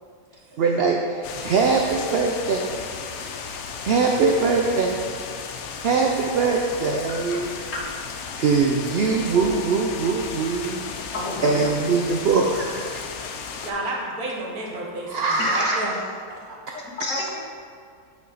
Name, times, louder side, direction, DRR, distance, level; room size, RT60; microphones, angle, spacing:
voice 1, 0.6-2.8 3.8-5.0 5.8-7.6 8.3-11.1 11.4-13.1 15.1-15.8, right 4 dB, 70° right, 1 dB, 0.6 m, -22 dB
sound 1, 1.2-13.7, left 6 dB, 90° left, 1.1 m, -35 dB
voice 2, 11.1-11.7 15.4-15.7 16.7-17.4, left 2 dB, 60° left, -3 dB, 1.5 m, -30 dB
voice 3, 13.6-15.9 16.3-16.8, right 2 dB, 85° right, -1 dB, 1.5 m, -31 dB
8.2 x 4.4 x 4.0 m, 2.2 s
omnidirectional pair, 1.5 m